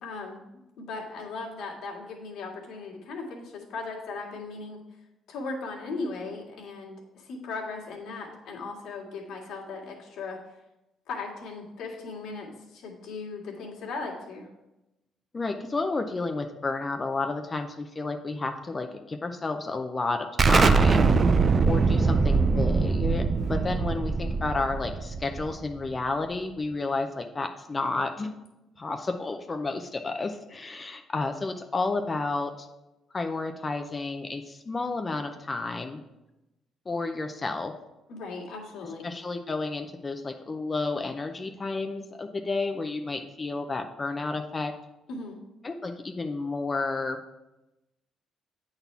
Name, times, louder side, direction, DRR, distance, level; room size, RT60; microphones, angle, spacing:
voice 1, 0.0-4.8 5.3-10.4 11.1-14.5 21.0-21.3 38.1-39.0 45.1-45.4, left 3 dB, 75° left, -2 dB, 1.9 m, -37 dB
voice 2, 15.3-21.1 21.6-28.3 28.8-32.7 33.1-36.0 36.9-37.7 39.0-44.7 45.6-47.2, left 3 dB, 25° left, 6 dB, 0.6 m, -31 dB
Explosion, 20.4-25.8, right 4 dB, 35° right, 0.4 m, -22 dB
8.8 x 4.1 x 5.6 m, 0.97 s
cardioid pair, 100°, 0 cm